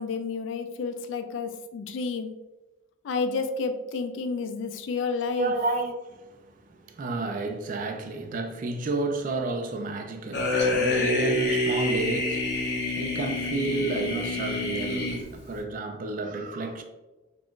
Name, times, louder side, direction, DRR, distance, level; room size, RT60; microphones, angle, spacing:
voice 1, 0.0-2.3 3.0-5.5, left 4 dB, 90° left, 0.3 m, -30 dB
voice 2, 5.4-16.8, right 3 dB, 45° right, 0.3 m, -31 dB
sound 1, 10.3-15.6, left 2 dB, 60° left, 0.7 m, -27 dB
2.4 x 2.3 x 3.5 m
head